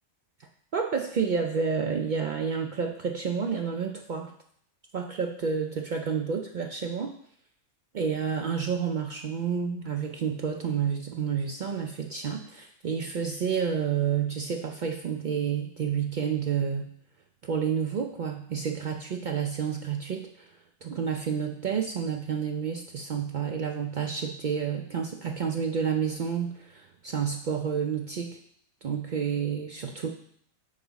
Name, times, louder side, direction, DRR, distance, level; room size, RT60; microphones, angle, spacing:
voice 1, 0.4-4.3 4.9-7.1 7.9-16.9 17.4-28.4 28.8-30.1, right 6 dB, 90° right, 2 dB, 0.4 m, -30 dB
6.3 x 4.7 x 4.0 m, 0.65 s
omnidirectional pair, 1.4 m